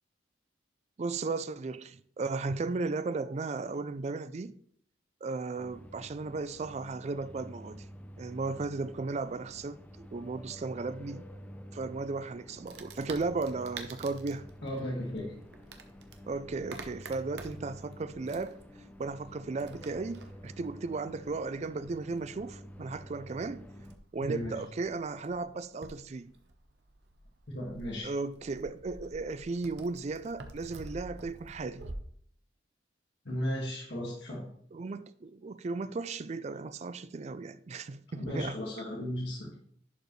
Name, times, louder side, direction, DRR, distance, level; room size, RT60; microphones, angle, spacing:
voice 1, 1.0-4.5 5.2-7.8 8.2-11.2 11.7-14.5 16.3-18.6 19.0-23.7 24.1-26.3 28.0-31.9 34.7-38.5, right 3 dB, 35° right, 0.4 m, -35 dB
sound 1, 5.6-24.0, equal, 10° left, 0.6 m, -49 dB
Wood, 12.6-32.0, right 3 dB, 65° right, 0.9 m, -50 dB
voice 2, 14.6-15.3 24.2-24.6 27.5-28.1 33.2-34.5 38.1-39.5, equal, 70° left, 1.9 m, -35 dB
11.0 x 5.0 x 3.2 m
head